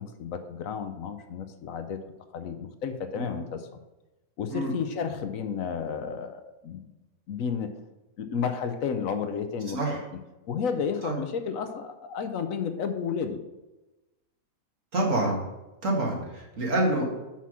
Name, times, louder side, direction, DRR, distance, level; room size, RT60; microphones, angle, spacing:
voice 1, 0.0-2.0 2.3-3.8 4.4-6.8 7.3-7.7 8.2-10.0 10.5-13.4, left 6 dB, 70° left, 8 dB, 1.1 m, -32 dB
voice 2, 14.9-15.4 15.8-17.1, right 1 dB, 60° right, -2 dB, 2.2 m, -26 dB
5.9 x 5.6 x 6.2 m, 1.0 s
omnidirectional pair, 1.5 m